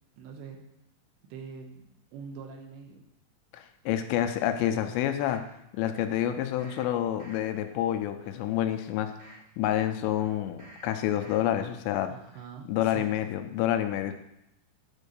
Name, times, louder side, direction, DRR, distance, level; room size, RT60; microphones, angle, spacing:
voice 1, 0.2-0.6 1.3-3.0 12.1-13.1, right 6 dB, 85° right, 3 dB, 3.4 m, -44 dB
voice 2, 3.5-9.1 9.6-12.1 12.7-14.1, left 11 dB, 90° left, 8 dB, 2.9 m, -28 dB
sound 1, 4.2-5.5 6.2-6.9 7.2-7.7 8.1-9.5 10.2-10.9 11.2-11.7 12.1-12.2, right 1 dB, 45° right, 3.9 m, -54 dB
10.5 x 4.6 x 6.8 m, 0.81 s
omnidirectional pair, 5.1 m